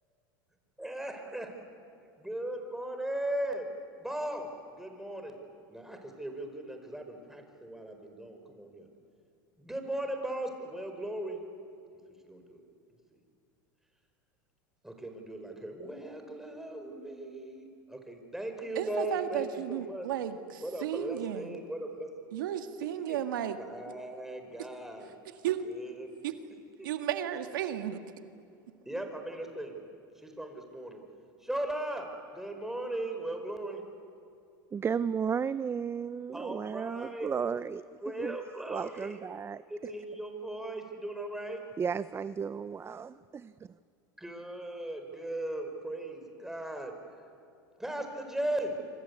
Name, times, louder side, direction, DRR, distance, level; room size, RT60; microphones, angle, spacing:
voice 1, 0.8-1.5 2.2-3.7 4.0-5.4 5.7-8.9 9.6-11.4 12.2-12.6 14.8-20.1 20.6-22.1 23.1-23.2 23.6-25.1 25.6-26.1 26.8-26.9 28.8-29.8 30.2-31.0 31.4-33.8 36.3-37.3 38.0-39.2 39.7-41.6 44.2-46.9 47.8-48.8, right 1 dB, 5° right, 4 dB, 5.1 m, -38 dB
voice 2, 18.7-21.5 22.3-23.6 25.4-25.6 26.2-26.3 26.8-28.0, right 11 dB, 80° right, 8 dB, 1.7 m, -33 dB
voice 3, 34.7-37.8 38.2-38.4 38.7-39.6 41.8-43.5, right 6 dB, 25° right, 16 dB, 0.6 m, -33 dB
26.5 x 26.0 x 8.3 m, 2.4 s
hypercardioid pair, 95°, 11 cm